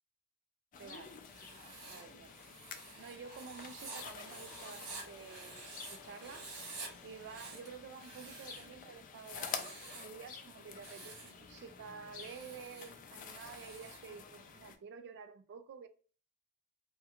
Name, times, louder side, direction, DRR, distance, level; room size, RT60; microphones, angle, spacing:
sound 1, 0.7-14.7, left 6 dB, 35° left, 0.3 m, -49 dB
voice 1, 0.8-1.2 1.9-2.4 3.0-6.5 7.0-15.9, right 6 dB, 50° right, 0.3 m, -51 dB
Writing, 1.2-6.0 6.2-6.9 7.2-8.7 9.2-10.2 10.7-11.4 12.1-14.1, right 3 dB, 85° right, 0.9 m, -50 dB
Domestic sounds home sounds, 3.8-9.6 11.5-11.6, left 6 dB, 80° left, 0.6 m, -59 dB
2.4 x 2.2 x 2.8 m
head